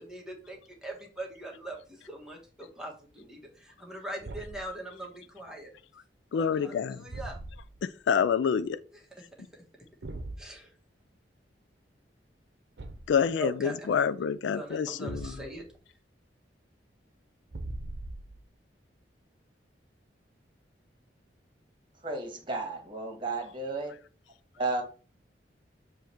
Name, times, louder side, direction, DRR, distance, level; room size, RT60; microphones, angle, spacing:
voice 1, 0.0-5.7 6.3-7.4 8.9-9.1 10.4-10.7 13.4-13.9 14.5-15.6, right 1 dB, 5° right, 1.3 m, -42 dB
Thump thud, 4.2-4.7 7.1-7.8 10.0-10.5 12.8-13.2 15.1-15.7 17.5-18.5, right 2 dB, 70° right, 0.8 m, -40 dB
voice 2, 6.3-7.0 8.1-8.8 13.1-15.2, left 7 dB, 80° left, 0.3 m, -27 dB
voice 3, 22.0-24.0 24.6-24.8, right 3 dB, 30° right, 1.5 m, -33 dB
7.0 x 3.1 x 4.4 m
head